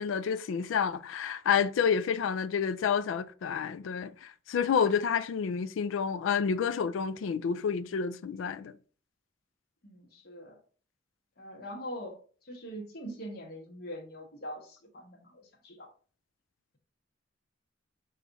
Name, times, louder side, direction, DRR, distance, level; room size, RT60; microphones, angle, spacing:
voice 1, 0.0-8.7, left 7 dB, 85° left, 0.3 m, -29 dB
voice 2, 9.8-10.6 11.4-15.9, equal, 55° left, 1.1 m, -43 dB
5.7 x 2.4 x 3.9 m
head